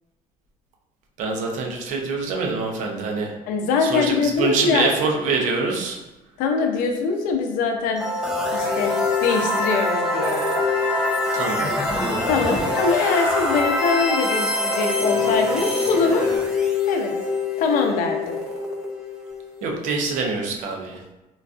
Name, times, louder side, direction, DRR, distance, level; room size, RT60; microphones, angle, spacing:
voice 1, 1.2-3.3 3.8-6.0 11.3-11.7 19.6-21.0, right 4 dB, 60° right, 1 dB, 0.6 m, -25 dB
voice 2, 3.5-4.9 6.4-8.1 8.5-8.9 9.2-10.4 12.3-16.3 16.9-17.1 17.6-18.4, left 4 dB, 75° left, 4 dB, 0.5 m, -23 dB
sound 1, 8.0-19.8, left 3 dB, 5° right, 0.5 m, -24 dB
sound 2, 8.2-16.4, right 2 dB, 90° right, 1.2 m, -39 dB
3.8 x 2.4 x 2.4 m, 1.0 s
cardioid pair, 155°, 14 cm